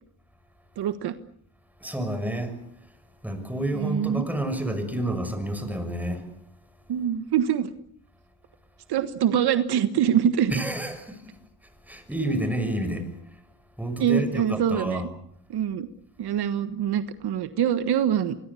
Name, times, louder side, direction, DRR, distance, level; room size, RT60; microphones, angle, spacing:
voice 1, 0.8-1.1 3.7-4.2 6.9-7.7 8.9-10.5 14.0-15.0 15.5-15.9 16.2-18.4, right 9 dB, 75° right, 11 dB, 1.5 m, -24 dB
voice 2, 1.8-2.5 3.2-6.3 10.5-11.2 11.9-13.1 13.8-15.0, right 1 dB, 5° right, 8 dB, 6.4 m, -29 dB
24.5 x 21.5 x 8.4 m, 0.72 s
cardioid pair, 105°, 39 cm